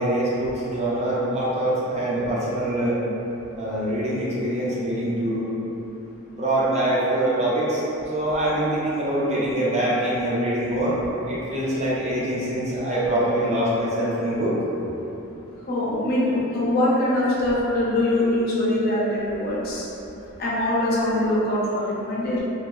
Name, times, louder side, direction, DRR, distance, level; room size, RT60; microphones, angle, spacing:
voice 1, 0.0-3.0 3.6-5.5 6.3-7.8 8.1-11.0 11.2-14.5, right 1 dB, 30° right, -7 dB, 0.6 m, -24 dB
voice 2, 15.7-19.9 20.4-22.4, left 1 dB, 45° left, -7 dB, 0.5 m, -23 dB
2.9 x 2.0 x 3.6 m, 3.0 s
head